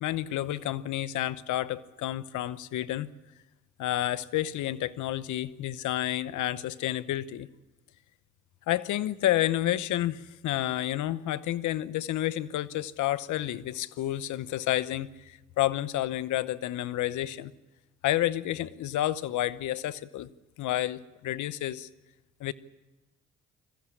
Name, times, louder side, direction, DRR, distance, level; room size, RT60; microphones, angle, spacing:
voice 1, 0.0-3.1 3.8-7.5 8.7-17.5 18.0-20.3 20.6-21.9 22.4-22.5, left 14 dB, 80° left, 0.9 m, -30 dB
21.5 x 15.0 x 9.9 m
supercardioid pair, 55°, 30 cm